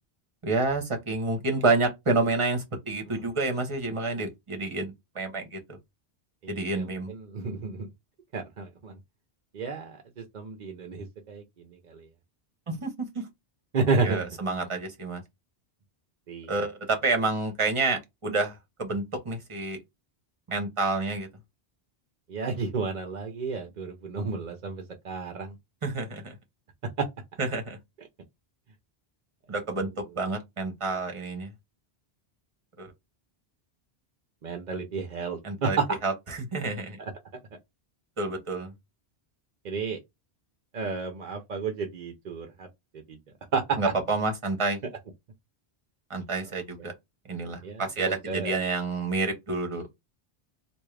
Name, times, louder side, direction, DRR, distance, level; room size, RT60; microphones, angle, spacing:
voice 1, 0.4-5.6 6.5-7.1 12.7-12.9 13.1-13.2 14.0-15.2 16.5-18.5 18.8-19.8 20.5-21.3 25.8-26.3 27.4-27.8 29.5-29.9 30.2-31.5 32.8-32.9 35.4-35.8 36.0-36.1 36.4-37.0 38.2-38.7 43.8-44.8 46.1-46.9 47.3-49.9, right 3 dB, 30° right, 1.0 m, -28 dB
voice 2, 6.4-7.9 8.3-8.9 9.5-12.0 13.7-14.3 16.3-16.7 22.3-25.5 27.0-27.1 28.0-28.1 29.7-29.9 34.4-36.0 37.0-37.1 39.6-40.0 40.7-42.7 43.1-43.2 43.5-43.9 46.5-46.6 47.6-48.5, right 4 dB, 50° right, 0.7 m, -31 dB
3.5 x 2.6 x 3.2 m
omnidirectional pair, 1.1 m